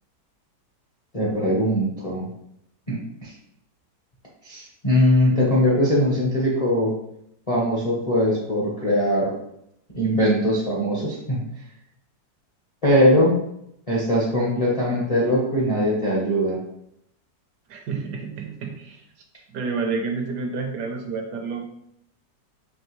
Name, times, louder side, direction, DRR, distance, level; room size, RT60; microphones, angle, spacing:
voice 1, 1.1-2.3 2.9-3.3 4.4-6.9 7.5-9.3 9.9-11.4 12.8-13.4 13.9-16.6, equal, 35° left, -6 dB, 0.5 m, -21 dB
voice 2, 17.7-19.0 19.5-21.6, right 4 dB, 75° right, 3 dB, 1.2 m, -29 dB
4.5 x 2.9 x 3.0 m, 0.76 s
omnidirectional pair, 1.9 m